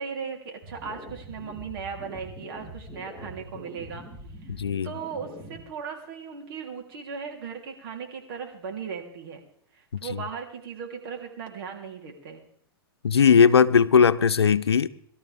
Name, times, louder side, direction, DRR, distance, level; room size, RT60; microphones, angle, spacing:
voice 1, 0.0-4.0 4.4-4.5 4.8-9.4 9.7-12.4, right 6 dB, 60° right, 3.4 m, -37 dB
sound 1, 0.6-5.6, equal, 15° right, 4.8 m, -43 dB
voice 2, 4.5-4.9 9.9-10.2 13.0-14.9, left 6 dB, 85° left, 0.7 m, -19 dB
23.0 x 13.0 x 3.5 m
hypercardioid pair, 110°, 13 cm